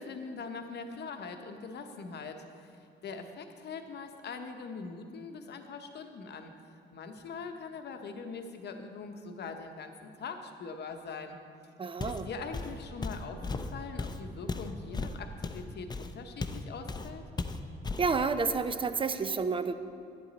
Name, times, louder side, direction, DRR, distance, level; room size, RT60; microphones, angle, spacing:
voice 1, 0.0-6.6 6.9-11.4 12.2-17.2, left 4 dB, 60° left, 6 dB, 0.9 m, -42 dB
voice 2, 11.8-12.3 18.0-19.7, right 4 dB, 25° right, 10 dB, 0.5 m, -30 dB
Walk footsteps, 12.0-12.3 12.5-16.6 16.9-17.1 17.4-18.1, left 3 dB, 20° left, 0.5 m, -36 dB
10.0 x 8.0 x 4.0 m, 2.5 s
cardioid pair, 90°, 20 cm